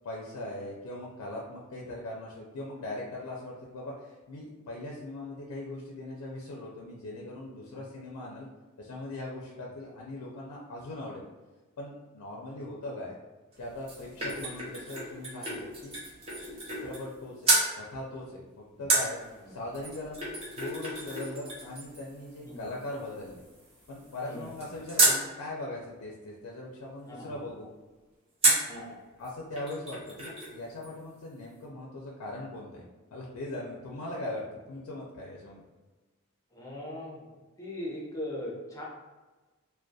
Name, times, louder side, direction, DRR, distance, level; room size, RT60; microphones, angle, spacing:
voice 1, 0.0-8.5 8.8-11.2 11.8-13.2 13.6-16.0 16.6-19.2 19.5-23.4 23.9-27.7 28.4-28.6 29.2-32.9 33.1-35.6, left 1 dB, 90° left, -3 dB, 0.4 m, -40 dB
sound 1, 13.5-17.2 17.4-17.7 18.9-25.2 28.4-28.8 29.2-29.3 29.6-30.6 30.8-30.9, right 2 dB, 25° right, 0.6 m, -31 dB
voice 2, 24.2-24.5 27.1-27.4 28.7-29.0 36.5-37.2 37.6-38.8, left 1 dB, 15° left, -4 dB, 0.5 m, -40 dB
2.3 x 2.1 x 2.6 m, 1.2 s
head